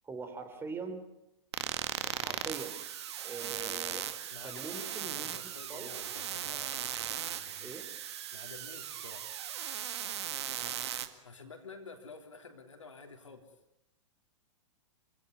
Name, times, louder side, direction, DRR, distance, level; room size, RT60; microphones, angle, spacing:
voice 1, 0.0-1.0 2.0-2.8 3.2-4.1 4.4-5.4 5.7-5.9 7.6-7.9, right 4 dB, 15° right, 7 dB, 3.5 m, -42 dB
sound 1, 1.5-11.1, right 10 dB, 60° right, 1.9 m, -38 dB
voice 2, 4.3-6.8 7.2-7.8 8.3-9.3 11.2-13.5, left 4 dB, 75° left, 5 dB, 3.6 m, -50 dB
27.5 x 17.0 x 9.8 m, 0.85 s
figure-of-eight pair, 100°, 16 cm